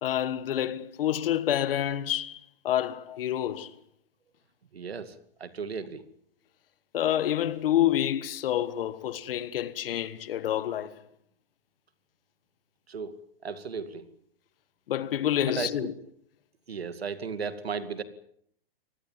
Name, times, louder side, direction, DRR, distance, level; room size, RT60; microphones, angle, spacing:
voice 1, 0.0-3.8 6.9-11.0 14.9-15.9, left 11 dB, 65° left, 1.7 m, -28 dB
voice 2, 4.7-6.0 12.9-13.2 13.4-14.1 15.4-15.9 16.7-18.0, right 5 dB, 90° right, 2.3 m, -35 dB
25.0 x 19.0 x 7.5 m
hypercardioid pair, 125°, 30 cm